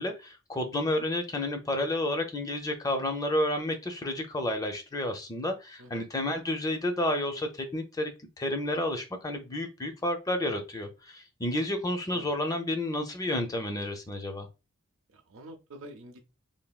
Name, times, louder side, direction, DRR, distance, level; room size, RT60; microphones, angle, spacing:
voice 1, 0.0-14.5, left 1 dB, 20° left, 0.5 m, -31 dB
voice 2, 15.1-16.2, right 1 dB, 70° right, 0.5 m, -47 dB
3.3 x 2.2 x 2.3 m
head